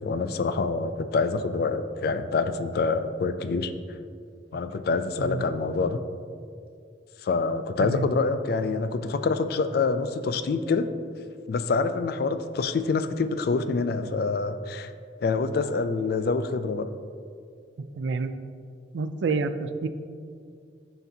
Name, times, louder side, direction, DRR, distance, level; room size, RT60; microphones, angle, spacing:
voice 1, 0.0-4.0 4.5-6.0 7.2-10.9 11.5-14.9 15.2-16.9, left 4 dB, 55° left, 11 dB, 0.3 m, -26 dB
voice 2, 7.8-8.1 17.8-18.3 18.9-19.9, right 4 dB, 75° right, 10 dB, 0.4 m, -28 dB
11.5 x 4.0 x 2.7 m, 2.3 s
head